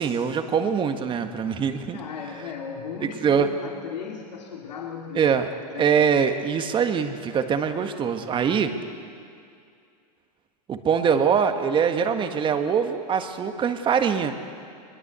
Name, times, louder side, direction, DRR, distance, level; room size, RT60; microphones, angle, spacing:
voice 1, 0.0-2.0 3.2-3.5 5.1-5.5 5.8-8.7 10.7-14.3, right 7 dB, 25° right, 7 dB, 1.7 m, -23 dB
voice 2, 1.9-5.4 5.7-6.0, left 6 dB, 85° left, 0 dB, 2.5 m, -36 dB
22.5 x 22.0 x 8.3 m, 2.4 s
hypercardioid pair, 125°, 21 cm